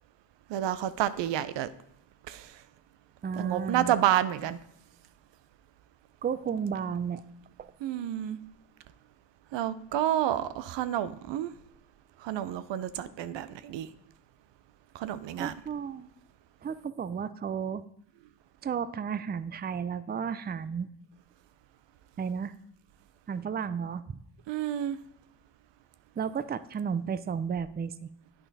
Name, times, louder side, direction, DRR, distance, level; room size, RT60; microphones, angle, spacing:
voice 1, 0.5-1.7 2.3-2.6 3.3-4.6 7.8-8.4 9.5-11.5 12.2-13.9 14.9-15.6 24.5-25.0, right 11 dB, 80° right, 0.6 m, -29 dB
voice 2, 3.2-3.9 6.2-7.2 7.6-7.7 15.4-16.1 16.6-17.8 18.6-20.9 22.2-22.5 23.3-24.2 26.2-28.1, right 7 dB, 25° right, 0.4 m, -33 dB
8.5 x 5.7 x 4.0 m
cardioid pair, 60°, 42 cm